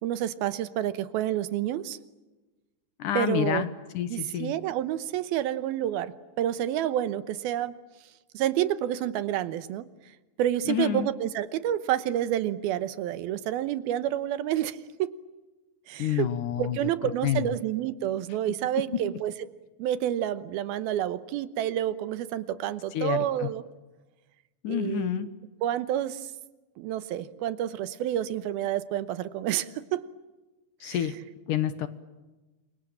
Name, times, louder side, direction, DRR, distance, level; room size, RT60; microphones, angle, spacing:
voice 1, 0.0-2.0 3.1-3.6 4.1-7.7 8.3-9.9 10.4-15.1 15.9-16.3 16.6-19.3 19.8-23.6 24.7-25.3 25.6-26.2 26.8-30.0 30.8-31.0, right 11 dB, 85° right, 14 dB, 2.9 m, -29 dB
voice 2, 3.0-3.7 3.9-4.5 10.7-11.1 16.0-16.8 17.2-17.5 22.9-23.5 24.6-25.3 30.8-31.1 31.5-31.9, left 10 dB, 70° left, 12 dB, 2.5 m, -28 dB
28.0 x 24.0 x 8.8 m, 1.1 s
omnidirectional pair, 4.3 m